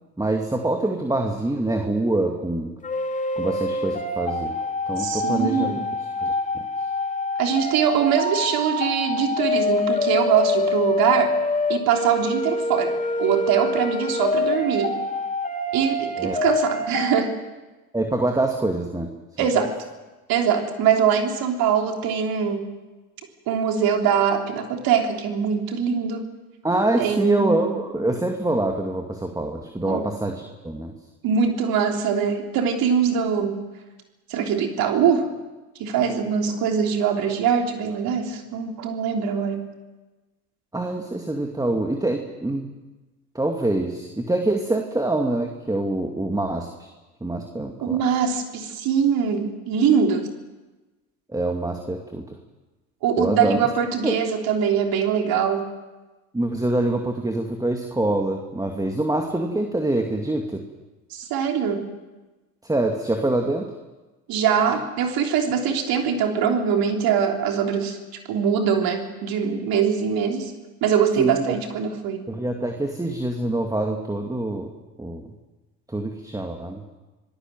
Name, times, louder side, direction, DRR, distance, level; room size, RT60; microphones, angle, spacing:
voice 1, 0.2-2.7 3.4-4.5 4.9-5.7 6.2-6.3 16.2-16.4 17.9-19.1 26.6-30.9 40.7-42.7 43.3-46.7 47.2-48.0 51.3-52.3 53.2-53.6 54.0-54.2 56.3-60.6 62.6-63.7 71.2-71.5 72.3-74.7 75.0-75.2 75.9-76.8, right 2 dB, 10° right, 4 dB, 2.4 m, -25 dB
sound 1, 2.8-17.2, left 2 dB, 15° left, 2.5 m, -26 dB
voice 2, 5.0-5.8 7.4-11.3 11.7-15.0 15.7-17.3 19.4-19.7 20.3-22.7 23.5-26.3 27.0-27.7 29.9-30.0 31.2-33.6 34.3-35.3 35.8-39.7 47.8-50.3 53.0-55.7 61.1-61.9 64.3-68.0 68.3-70.5 70.8-72.2, right 7 dB, 55° right, 3 dB, 3.5 m, -22 dB
25.5 x 18.5 x 7.7 m, 1.2 s
hypercardioid pair, 75°, 43 cm